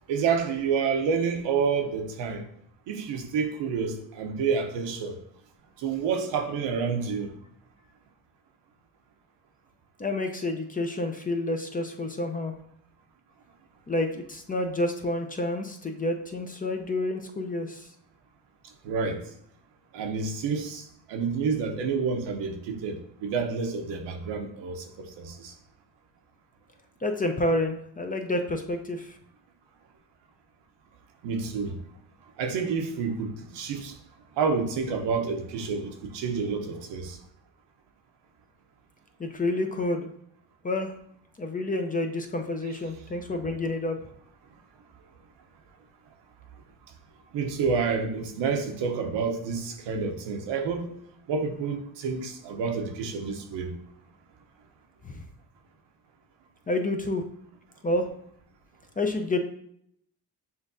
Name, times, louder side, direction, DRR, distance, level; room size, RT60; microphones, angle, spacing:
voice 1, 0.1-2.5 2.9-5.2 5.8-7.3 18.8-19.2 19.9-25.5 31.2-31.8 32.4-34.0 34.4-37.2 47.3-50.9 51.3-53.7, right 5 dB, 80° right, 4 dB, 0.8 m, -29 dB
voice 2, 10.0-12.5 13.9-17.9 27.0-29.2 39.2-40.1 40.6-40.9 41.4-44.0 55.0-55.2 56.7-57.2 57.8-58.1 59.0-59.4, left 2 dB, 20° left, 5 dB, 0.5 m, -29 dB
7.0 x 2.6 x 2.6 m, 0.69 s
supercardioid pair, 75°, 43 cm